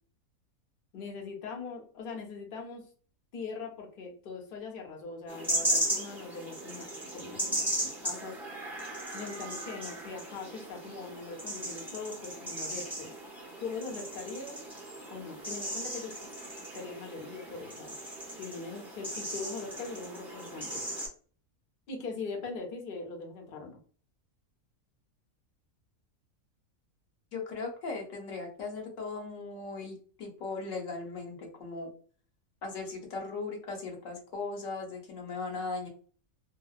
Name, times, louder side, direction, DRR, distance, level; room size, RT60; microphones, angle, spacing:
voice 1, 0.9-2.8 3.3-8.3 9.1-13.1 13.6-14.6 15.1-16.2 16.7-17.9 18.4-20.8 21.9-23.8, left 4 dB, 50° left, 1 dB, 0.7 m, -41 dB
sound 1, 5.3-21.1, right 1 dB, ahead, 0.4 m, -36 dB
voice 2, 27.3-31.9 32.6-35.9, left 3 dB, 70° left, 0 dB, 1.2 m, -38 dB
2.7 x 2.0 x 2.3 m, 0.41 s
omnidirectional pair, 1.5 m